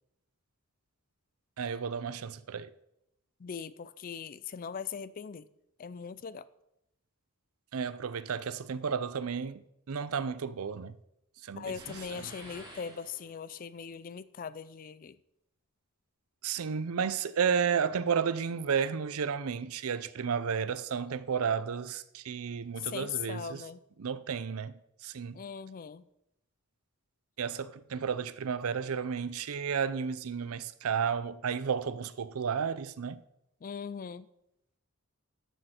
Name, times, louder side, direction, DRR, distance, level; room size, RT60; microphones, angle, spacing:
voice 1, 1.6-2.7 7.7-9.6 9.9-10.9 11.4-12.3 16.4-23.7 24.0-25.4 27.4-33.2, right 6 dB, 85° right, 0.5 m, -32 dB
voice 2, 3.4-5.4 5.8-6.4 11.6-15.1 22.9-23.8 25.3-26.0 33.6-34.3, left 7 dB, 40° left, 0.4 m, -40 dB
sound 1, 11.7-13.6, right 1 dB, 20° right, 3.3 m, -50 dB
13.0 x 6.5 x 4.4 m
head